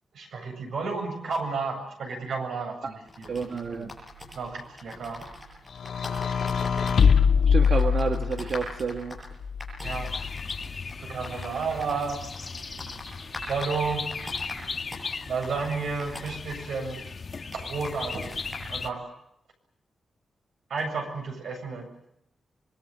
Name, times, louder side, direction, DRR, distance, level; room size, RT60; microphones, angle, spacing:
voice 1, 0.1-3.4 4.3-5.2 9.8-10.1 11.0-12.3 13.5-14.1 15.3-17.1 17.5-18.4 18.7-19.1 20.7-22.1, right 4 dB, 85° right, 4 dB, 7.9 m, -32 dB
sound 1, 3.1-18.7, left 1 dB, 5° right, 7.7 m, -44 dB
voice 2, 3.3-3.9 7.5-9.2, right 5 dB, 50° right, 4 dB, 1.7 m, -30 dB
sound 2, 5.8-8.5 9.4-10.4, left 6 dB, 70° left, 2.2 m, -23 dB
sound 3, 9.8-18.9, left 4 dB, 35° left, 2.1 m, -37 dB
26.0 x 22.5 x 8.1 m, 0.77 s
wide cardioid pair, 165°, 0 cm